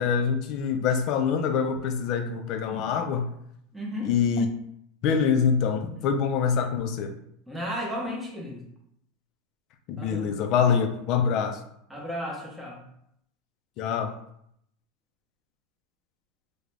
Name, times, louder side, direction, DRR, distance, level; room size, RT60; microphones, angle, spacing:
voice 1, 0.0-3.3 4.0-4.5 5.0-7.2 9.9-11.6 13.8-14.1, left 6 dB, 50° left, 7 dB, 0.3 m, -25 dB
voice 2, 3.7-4.1 7.5-8.6 10.0-10.3 11.9-12.8, equal, 5° right, -2 dB, 0.7 m, -34 dB
2.4 x 2.1 x 3.1 m, 0.73 s
supercardioid pair, 120°, 0 cm